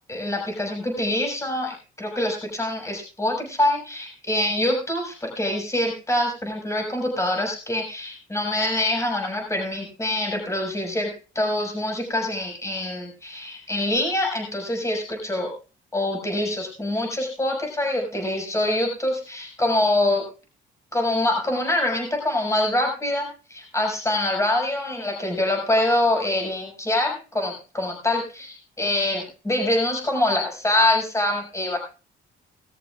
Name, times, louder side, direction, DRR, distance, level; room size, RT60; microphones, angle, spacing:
voice 1, 0.1-11.1 11.3-15.5 15.9-20.2 20.9-31.8, left 1 dB, 15° left, 1 dB, 5.8 m, -25 dB
20.0 x 13.5 x 2.4 m, 0.33 s
cardioid pair, 90°, 20 cm